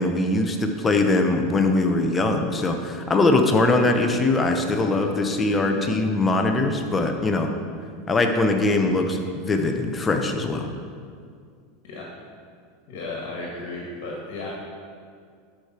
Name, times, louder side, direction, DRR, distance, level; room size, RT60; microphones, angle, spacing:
voice 1, 0.0-7.5 8.1-10.7, left 2 dB, 20° left, 5 dB, 0.9 m, -22 dB
voice 2, 4.5-5.3 5.7-6.0 11.8-12.1 12.9-14.5, left 2 dB, 65° left, -3 dB, 1.9 m, -35 dB
11.5 x 5.0 x 4.5 m, 2.1 s
supercardioid pair, 115°, 0 cm